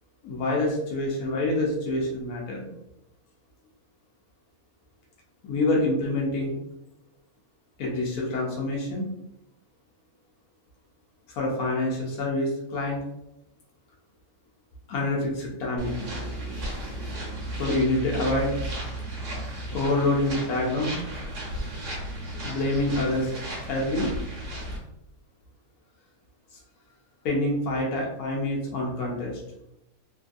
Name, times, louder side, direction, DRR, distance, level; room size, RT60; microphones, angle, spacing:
voice 1, 0.2-2.7 5.4-6.6 7.8-9.1 11.3-13.0 14.9-16.1 17.5-18.5 19.7-21.0 22.4-23.3 23.7-24.1 27.2-29.4, left 2 dB, 80° left, -2 dB, 1.1 m, -26 dB
sound 1, 15.8-24.8, right 1 dB, 60° right, 1.1 m, -34 dB
3.1 x 2.5 x 2.4 m, 0.85 s
omnidirectional pair, 1.5 m